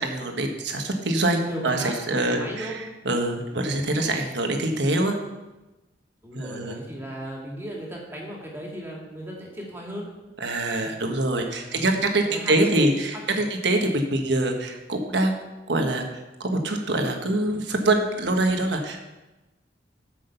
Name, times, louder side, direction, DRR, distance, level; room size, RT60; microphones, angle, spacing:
voice 1, 0.0-5.2 6.3-6.8 10.4-15.3 15.7-16.0 16.4-19.0, right 2 dB, 65° right, 4 dB, 1.3 m, -24 dB
voice 2, 1.5-2.8 6.2-10.1 10.8-10.9 11.6-13.0 13.3-13.4, right 1 dB, 15° right, -2 dB, 2.3 m, -36 dB
8.0 x 6.2 x 6.8 m, 1.1 s
head